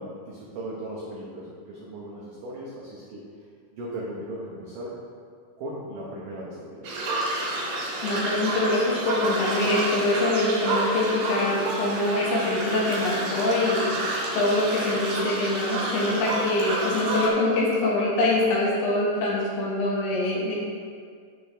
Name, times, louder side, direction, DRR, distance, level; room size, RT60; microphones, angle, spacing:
voice 1, 0.0-3.2 3.7-4.9 5.6-7.1, right 1 dB, 85° right, -6 dB, 1.9 m, -37 dB
sound 1, 6.8-17.3, right 1 dB, 65° right, 3.6 m, -29 dB
voice 2, 8.0-14.1 14.3-20.6, left 2 dB, 75° left, -5 dB, 3.8 m, -24 dB
10.5 x 6.4 x 3.4 m, 2.1 s
omnidirectional pair, 5.5 m